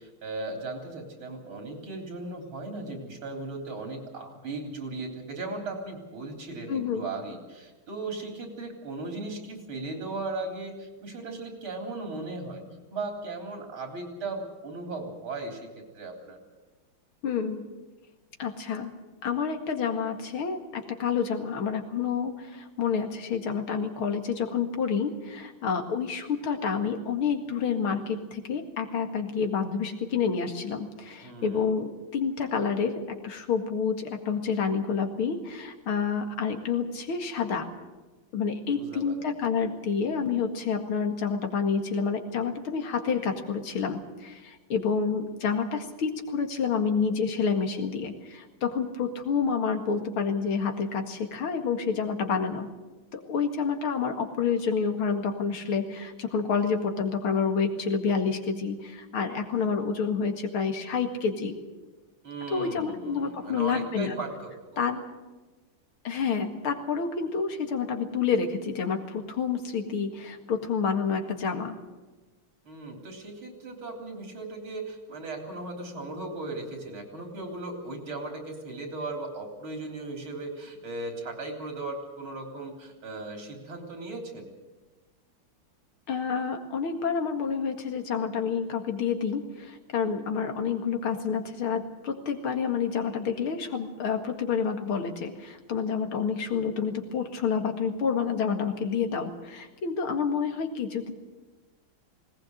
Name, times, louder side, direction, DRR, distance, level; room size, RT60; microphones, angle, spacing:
voice 1, 0.0-12.6 12.9-15.7 15.9-16.4 31.2-31.7 38.7-39.2 62.2-64.8 72.7-84.5, right 2 dB, 80° right, 3 dB, 4.4 m, -37 dB
voice 2, 6.7-7.0 17.2-17.7 18.4-18.9 19.2-37.7 38.3-52.7 53.1-61.5 62.5-64.2 64.8-65.0 66.0-71.8 86.1-101.1, left 6 dB, 85° left, 5 dB, 2.8 m, -29 dB
19.5 x 18.5 x 8.0 m, 1.2 s
omnidirectional pair, 2.3 m